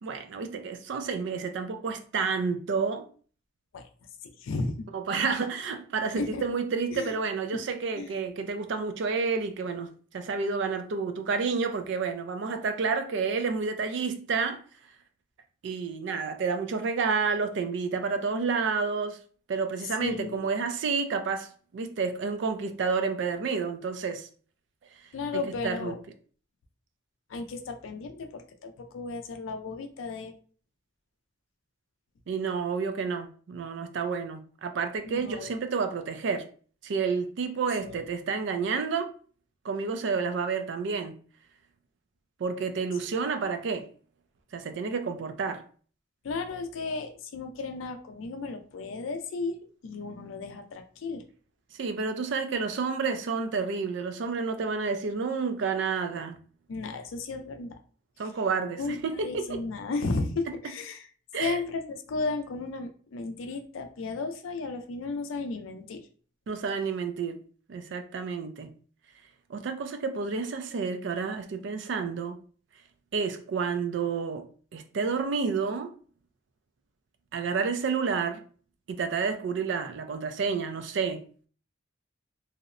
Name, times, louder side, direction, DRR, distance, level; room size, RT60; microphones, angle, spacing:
voice 1, 0.0-3.1 4.9-9.9 10.1-14.6 15.6-19.2 19.5-24.3 25.6-26.0 32.3-36.4 36.8-39.1 39.6-41.2 42.4-43.9 44.5-45.6 51.8-56.4 58.2-59.6 61.3-61.6 66.5-67.4 67.7-68.7 69.5-72.4 73.1-75.9 77.3-78.4 78.9-81.2, right 5 dB, 65° right, 0.3 m, -30 dB
voice 2, 4.2-4.9 5.3-5.4 6.1-6.4 6.9-7.1 8.0-8.1 20.0-20.5 25.1-26.0 27.3-30.3 35.0-35.5 37.8-38.0 46.2-49.6 49.8-51.2 56.7-57.7 58.8-61.1 61.4-66.0, left 3 dB, 85° left, 0.4 m, -34 dB
2.7 x 2.0 x 2.4 m
head